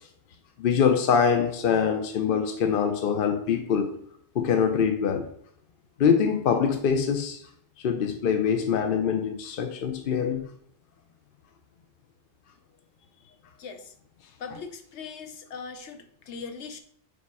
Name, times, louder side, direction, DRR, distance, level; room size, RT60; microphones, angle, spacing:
voice 1, 0.6-3.9 4.3-5.3 6.0-7.4 7.8-10.5, left 7 dB, 60° left, 0.7 m, -24 dB
voice 2, 13.6-13.9 14.2-16.8, left 5 dB, 80° left, 1.0 m, -40 dB
5.2 x 4.1 x 4.7 m
omnidirectional pair, 1.2 m